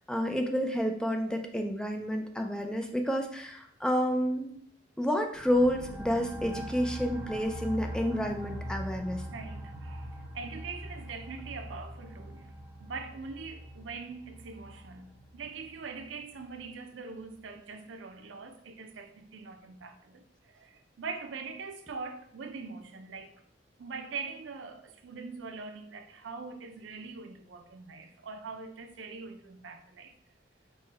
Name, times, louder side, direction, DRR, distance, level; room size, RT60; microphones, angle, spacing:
voice 1, 0.1-4.5 5.0-9.3, equal, 5° left, 0.4 m, -29 dB
sound 1, 5.3-16.7, equal, 15° right, 0.8 m, -42 dB
voice 2, 9.3-12.5 12.8-23.3 23.8-30.1, right 4 dB, 85° right, 0.5 m, -43 dB
5.6 x 2.2 x 4.1 m
head